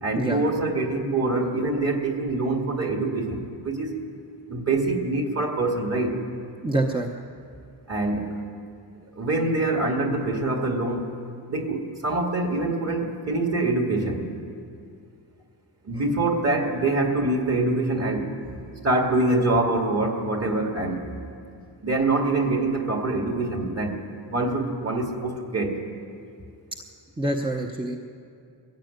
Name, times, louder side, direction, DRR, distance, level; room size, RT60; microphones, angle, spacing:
voice 1, 0.0-3.9 4.5-6.2 7.9-8.4 9.2-11.1 11.5-14.3 15.8-18.3 18.8-21.2 21.8-24.0 24.3-25.7, right 2 dB, 35° right, 2 dB, 2.3 m, -25 dB
voice 2, 6.6-7.1 27.2-28.0, right 1 dB, 10° right, 1 dB, 0.9 m, -26 dB
22.0 x 14.5 x 9.3 m, 2.4 s
wide cardioid pair, 175°, 43 cm